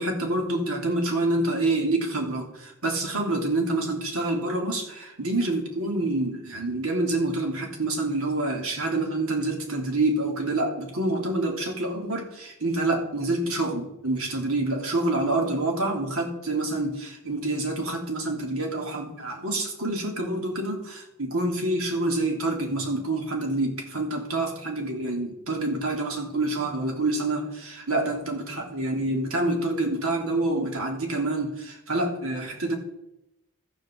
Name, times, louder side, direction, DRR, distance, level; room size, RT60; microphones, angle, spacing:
voice 1, 0.0-32.8, right 2 dB, 70° right, 2 dB, 3.1 m, -27 dB
13.5 x 8.2 x 7.4 m, 0.88 s
head